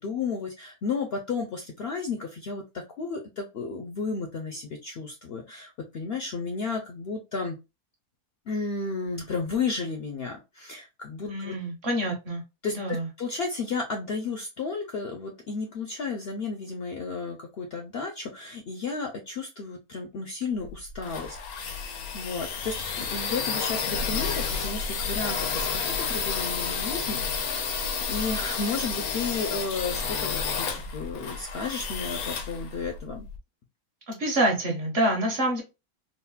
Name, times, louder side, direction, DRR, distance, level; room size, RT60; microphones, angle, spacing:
voice 1, 0.0-7.6 8.5-11.5 12.6-30.7 30.9-33.2, left 4 dB, 65° left, 3 dB, 0.6 m, -33 dB
voice 2, 11.2-12.4 12.7-13.1 34.1-35.6, right 1 dB, 50° right, 1 dB, 1.2 m, -26 dB
sound 1, 20.6-33.4, left 5 dB, 80° left, 1.1 m, -31 dB
3.9 x 2.0 x 2.2 m, 0.25 s
omnidirectional pair, 1.5 m